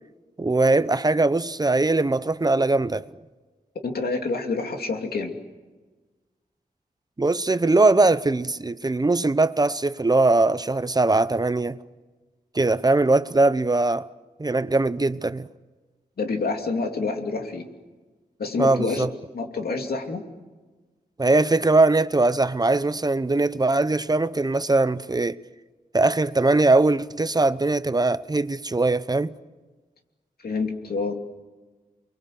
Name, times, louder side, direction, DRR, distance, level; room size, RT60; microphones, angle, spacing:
voice 1, 0.4-3.1 7.2-11.8 12.5-14.1 14.4-15.5 18.6-19.1 21.2-25.4 25.9-29.3, right 2 dB, 25° right, 0.7 m, -21 dB
voice 2, 3.8-5.3 16.2-17.7 18.4-19.1 19.3-20.2 30.4-31.1, left 4 dB, 90° left, 2.7 m, -27 dB
29.5 x 22.0 x 7.8 m
wide cardioid pair, 90°, 15 cm